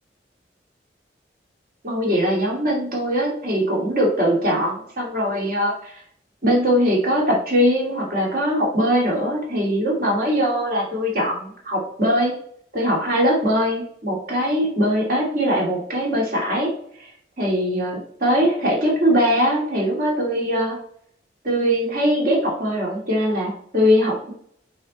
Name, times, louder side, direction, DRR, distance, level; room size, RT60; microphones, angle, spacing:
voice 1, 1.8-6.0 6.4-12.3 12.7-16.7 17.0-17.1 17.4-20.8 21.4-24.3, equal, 55° right, -2 dB, 2.7 m, -21 dB
7.5 x 4.5 x 4.3 m, 0.63 s
head